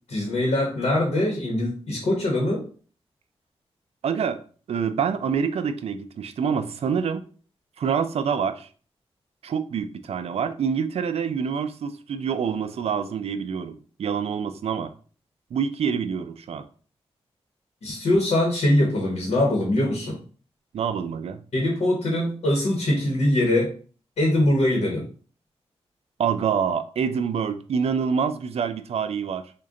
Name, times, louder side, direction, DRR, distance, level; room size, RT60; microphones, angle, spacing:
voice 1, 0.1-2.6 17.8-20.2 21.5-23.7 24.2-25.1, left 1 dB, 85° left, -1 dB, 0.9 m, -22 dB
voice 2, 4.0-4.4 4.7-7.2 7.8-8.7 9.4-14.9 15.5-16.6 20.7-21.4 26.2-29.4, right 6 dB, 70° right, 10 dB, 0.4 m, -26 dB
3.7 x 2.1 x 3.7 m, 0.40 s
wide cardioid pair, 120°, 11 cm